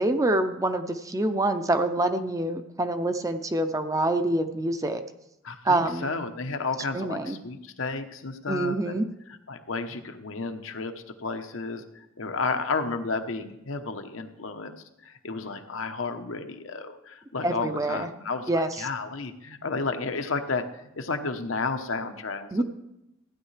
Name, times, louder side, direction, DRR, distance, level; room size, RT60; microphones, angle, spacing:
voice 1, 0.0-5.0 5.6-6.1 6.9-7.4 8.5-9.1 17.4-18.1 18.5-18.7 22.5-22.6, right 2 dB, 15° right, 8 dB, 0.5 m, -26 dB
voice 2, 5.4-9.0 9.5-10.9 11.2-14.7 15.0-22.6, left 4 dB, 80° left, 7 dB, 0.9 m, -32 dB
15.5 x 9.6 x 3.3 m, 0.87 s
head